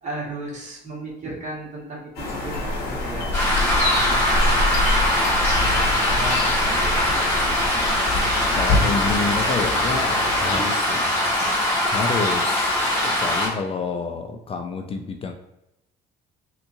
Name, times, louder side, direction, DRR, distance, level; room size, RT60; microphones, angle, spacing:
voice 1, 0.0-3.3 3.8-4.7 5.6-7.3 10.5-10.6, right 2 dB, 45° right, -4 dB, 1.5 m, -35 dB
sound 1, 2.2-10.6, left 2 dB, 65° left, 1.1 m, -26 dB
sound 2, 3.3-13.5, left 1 dB, 15° left, 1.4 m, -22 dB
Percussion / Church bell, 3.7-8.8, right 6 dB, 65° right, 1.0 m, -36 dB
voice 2, 8.5-10.1 10.4-11.2 11.9-12.7 13.0-15.3, left 4 dB, 35° left, 5 dB, 0.4 m, -28 dB
3.5 x 2.9 x 2.6 m, 0.87 s
cardioid pair, 110°, 17 cm